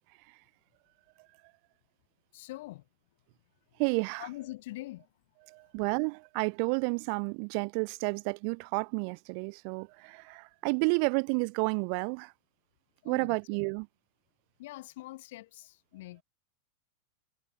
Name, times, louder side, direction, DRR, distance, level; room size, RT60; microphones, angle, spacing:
voice 1, 2.3-2.8 4.2-5.1 13.0-13.4 14.6-16.2, left 18 dB, 50° left, 7.2 m, -43 dB
voice 2, 3.8-4.3 5.5-12.3 13.0-13.9, right 40 dB or more, 45° right, 7.7 m, -31 dB
figure-of-eight pair, 90°, 0 cm